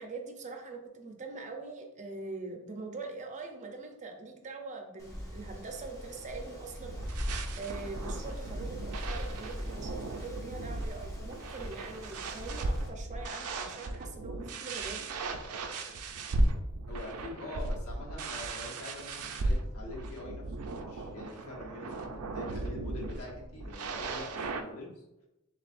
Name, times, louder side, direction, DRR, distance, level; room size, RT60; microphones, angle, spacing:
voice 1, 0.0-7.2 7.6-15.1, right 3 dB, 35° right, 3 dB, 0.6 m, -43 dB
Wind, 5.0-12.9, equal, 15° left, 1.0 m, -41 dB
sound 1, 6.8-24.6, right 2 dB, 80° right, 0.5 m, -36 dB
voice 2, 16.9-20.5 20.8-25.3, left 1 dB, 80° left, -2 dB, 1.1 m, -44 dB
6.8 x 2.4 x 2.5 m, 0.94 s
head